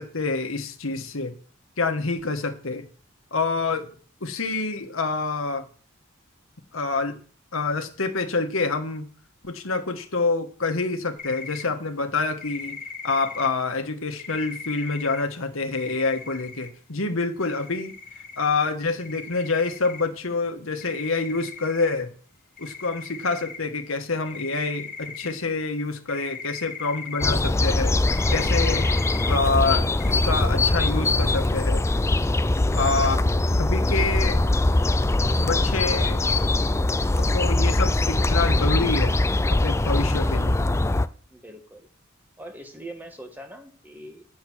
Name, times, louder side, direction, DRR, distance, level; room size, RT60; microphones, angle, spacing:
voice 1, 0.0-1.4 1.8-2.9 3.3-3.9 4.2-5.6 6.7-7.1 7.5-9.1 9.4-12.8 13.0-17.9 18.4-22.1 22.6-27.9 28.3-28.9 29.3-31.8 32.7-33.2 33.5-34.4 35.4-36.2 37.2-39.2 39.5-40.6, left 3 dB, 85° left, 1.4 m, -27 dB
sound 1, 11.2-11.6 12.4-13.5 14.2-15.2 15.7-16.7 17.4-18.5 19.0-20.0 20.8-22.0 22.6-23.6 24.1-25.3 26.1-27.3 28.1-29.4 30.0-30.1, left 5 dB, 40° left, 1.2 m, -38 dB
sound 2, 27.2-41.1, left 2 dB, 15° left, 0.4 m, -22 dB
voice 2, 41.3-41.9 42.4-44.3, right 1 dB, 10° right, 1.5 m, -42 dB
9.0 x 7.0 x 6.2 m
head